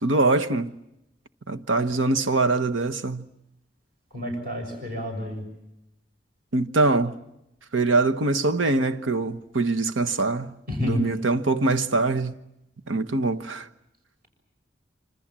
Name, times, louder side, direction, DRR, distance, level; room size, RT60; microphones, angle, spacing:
voice 1, 0.0-0.7 1.5-3.3 6.5-7.2 7.7-10.5 10.8-12.3 12.9-13.7, right 3 dB, 85° right, 1.2 m, -23 dB
voice 2, 4.1-5.5 10.7-11.0, equal, 45° right, 6.9 m, -29 dB
26.5 x 26.0 x 7.5 m
head